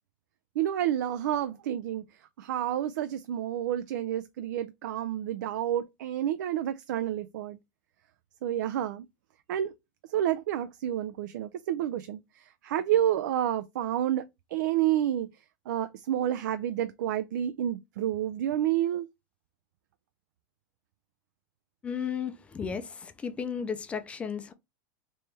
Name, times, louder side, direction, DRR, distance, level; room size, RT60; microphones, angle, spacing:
voice 1, 0.6-2.0 2.4-7.6 8.4-9.0 9.5-9.7 10.1-12.2 12.6-15.3 15.7-19.1, right 11 dB, 85° right, 0.4 m, -29 dB
voice 2, 21.8-24.5, left 7 dB, 10° left, 0.4 m, -34 dB
3.2 x 2.9 x 3.3 m
supercardioid pair, 160°, 10 cm